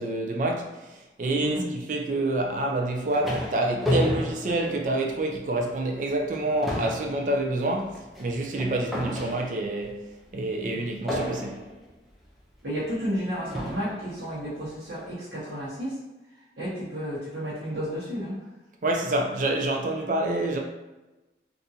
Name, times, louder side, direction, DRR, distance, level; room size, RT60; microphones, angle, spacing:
voice 1, 0.0-10.0 10.3-11.6 18.8-20.6, right 2 dB, 45° right, 0.4 m, -27 dB
sound 1, 2.7-5.4 5.8-6.0 6.3-9.8 11.1-11.8 12.7-12.8 13.5-14.0, equal, ahead, 0.6 m, -31 dB
voice 2, 12.6-16.0 16.6-18.4, equal, 80° right, 1.0 m, -32 dB
3.6 x 2.6 x 2.7 m
head